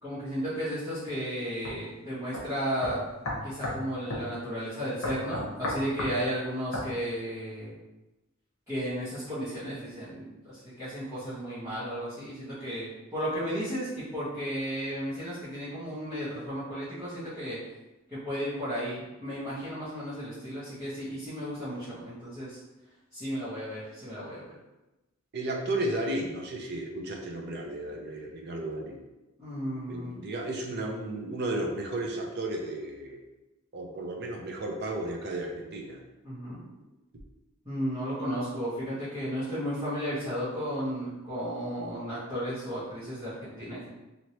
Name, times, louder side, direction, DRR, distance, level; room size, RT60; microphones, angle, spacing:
voice 1, 0.0-3.0 3.4-7.7 8.7-17.6 18.1-22.6 23.1-24.5 29.4-30.1 36.2-36.6 37.6-43.9, equal, 15° right, -16 dB, 1.3 m, -34 dB
sound 1, 1.6-1.8 2.3-2.4 2.8-3.8 4.1-4.3 5.0-6.2 6.7-6.9, left 1 dB, 75° left, 0.8 m, -33 dB
voice 2, 25.3-29.0 29.9-33.2 33.7-36.0, right 1 dB, 50° right, 1 dB, 0.6 m, -33 dB
3.1 x 2.8 x 2.8 m, 1.0 s
head